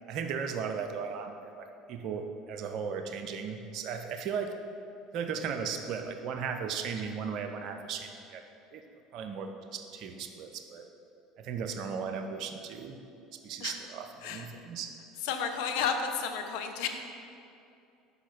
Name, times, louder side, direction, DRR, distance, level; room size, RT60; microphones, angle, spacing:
voice 1, 0.1-4.6 5.1-8.4 8.7-8.8 9.1-10.8 11.4-13.0 13.4-14.9, right 6 dB, 55° right, 5 dB, 0.5 m, -36 dB
voice 2, 15.2-16.9, left 6 dB, 65° left, 6 dB, 0.5 m, -32 dB
5.4 x 4.0 x 5.9 m, 2.6 s
figure-of-eight pair, 65°, 0 cm